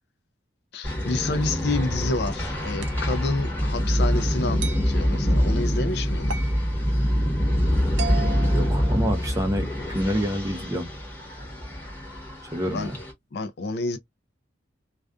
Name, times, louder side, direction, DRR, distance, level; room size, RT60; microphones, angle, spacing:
voice 1, 0.7-6.4 12.7-12.9 13.3-14.0, left 3 dB, 60° left, 0.4 m, -29 dB
sound 1, 0.8-13.1, equal, 10° left, 1.0 m, -25 dB
sound 2, 2.8-3.1 4.6-4.9 6.3-6.6 8.0-9.4, right 5 dB, 80° right, 0.5 m, -35 dB
voice 2, 8.5-10.9 12.5-13.0, equal, 15° right, 0.6 m, -27 dB
2.4 x 2.3 x 2.3 m
head